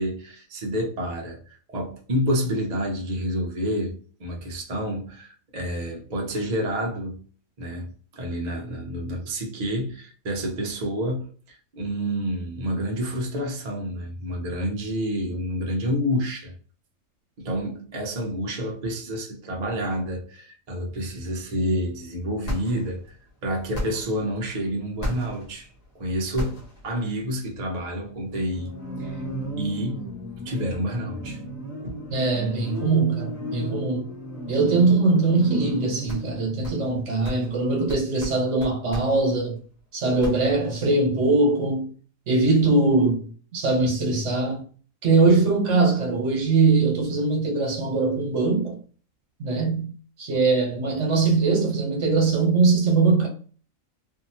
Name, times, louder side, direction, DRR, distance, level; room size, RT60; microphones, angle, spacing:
voice 1, 0.0-7.2 7.6-16.5 17.4-23.1 23.4-25.7 25.9-28.7 29.0-29.2 29.6-30.1 30.4-31.4 31.8-31.9, equal, 40° right, 0.6 m, -29 dB
sound 1, 22.5-23.0 23.7-24.2 25.0-25.6 26.4-26.9 28.3-39.2 40.2-40.6, equal, 30° left, 1.1 m, -34 dB
voice 2, 32.1-34.1 34.5-39.6 39.9-41.9 42.3-44.6 45.0-48.8 49.4-49.9 50.2-53.3, right 3 dB, 60° right, 1.3 m, -21 dB
2.7 x 2.7 x 2.7 m
omnidirectional pair, 1.4 m